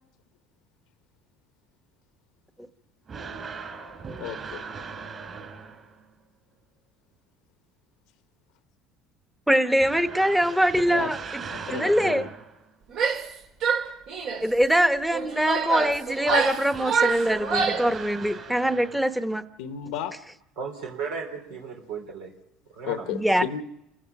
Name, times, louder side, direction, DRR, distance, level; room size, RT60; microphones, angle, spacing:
sound 1, 3.1-6.0 9.8-12.7 16.2-19.3, right 5 dB, 35° right, 5.0 m, -39 dB
voice 1, 4.2-4.6 10.2-10.3 10.9-11.1 11.5-12.3 19.6-20.2 22.9-23.6, left 10 dB, 85° left, 8 dB, 1.0 m, -33 dB
voice 2, 9.5-11.4 11.7-12.3 14.4-19.4 23.1-23.4, equal, 5° right, 10 dB, 1.1 m, -23 dB
Female speech woman speaking / Yell, 12.9-13.3 13.6-14.5 15.1-17.9, right 5 dB, 60° right, 2.4 m, -26 dB
voice 3, 20.6-22.3 22.7-23.1, right 5 dB, 85° right, 2 dB, 3.6 m, -35 dB
29.5 x 15.5 x 5.9 m, 0.87 s
supercardioid pair, 105°, 0 cm